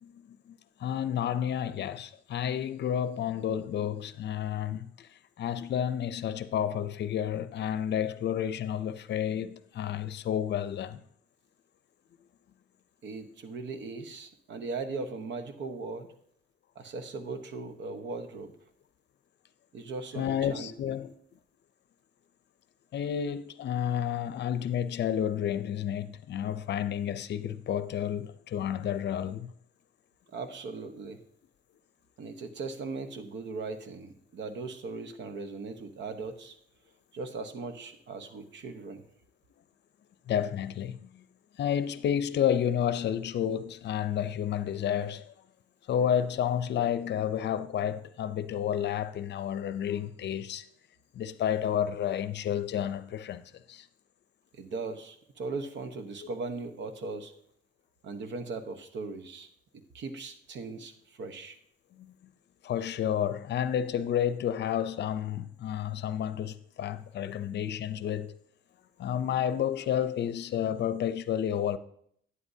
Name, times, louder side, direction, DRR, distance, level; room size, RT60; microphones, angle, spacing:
voice 1, 0.0-5.1 5.4-11.0 20.2-21.1 22.9-29.5 40.3-41.2 41.6-45.3 45.9-50.6 51.1-53.9 61.9-62.1 62.6-68.3 69.0-71.8, left 9 dB, 60° left, 0.6 m, -31 dB
voice 2, 13.0-16.1 16.7-18.5 19.7-20.7 30.3-31.2 32.2-36.6 37.1-39.0 54.5-57.3 58.0-59.5 59.9-61.6, right 3 dB, 65° right, 1.1 m, -38 dB
11.0 x 9.5 x 2.7 m
cardioid pair, 90°, 20 cm